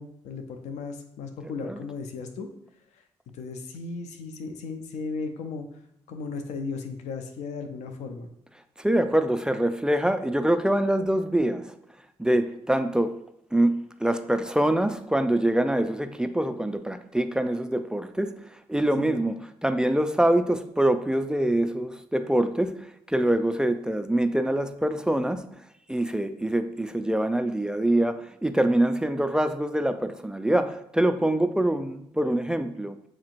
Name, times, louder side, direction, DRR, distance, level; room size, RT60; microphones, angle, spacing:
voice 1, 0.0-2.5 3.3-5.7 6.1-8.3 19.0-19.2, left 4 dB, 85° left, 0.5 m, -36 dB
voice 2, 8.8-11.8 12.2-13.2 13.5-25.6 25.9-33.0, right 1 dB, 5° right, 0.3 m, -25 dB
7.2 x 2.9 x 2.5 m
cardioid pair, 70°, 11 cm